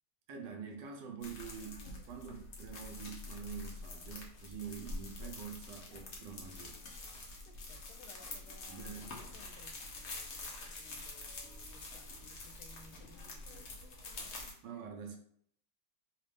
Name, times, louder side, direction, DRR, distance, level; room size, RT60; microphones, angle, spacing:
voice 1, 0.3-6.8 8.7-9.1 14.6-15.2, right 6 dB, 70° right, 1.2 m, -46 dB
sound 1, 1.2-14.5, left 2 dB, 60° left, 0.7 m, -46 dB
voice 2, 7.4-13.8 14.1-14.2 14.7-14.8, left 4 dB, 90° left, 1.4 m, -61 dB
4.0 x 2.4 x 3.2 m
omnidirectional pair, 2.2 m